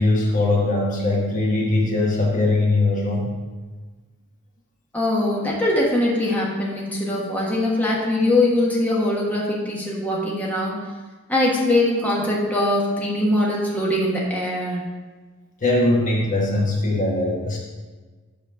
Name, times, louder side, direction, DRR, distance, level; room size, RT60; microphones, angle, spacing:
voice 1, 0.0-3.3 15.6-17.6, left 2 dB, 35° left, -2 dB, 1.2 m, -20 dB
voice 2, 4.9-10.8 11.3-14.8, left 1 dB, 5° left, -4 dB, 1.3 m, -22 dB
7.0 x 4.3 x 6.3 m, 1.3 s
head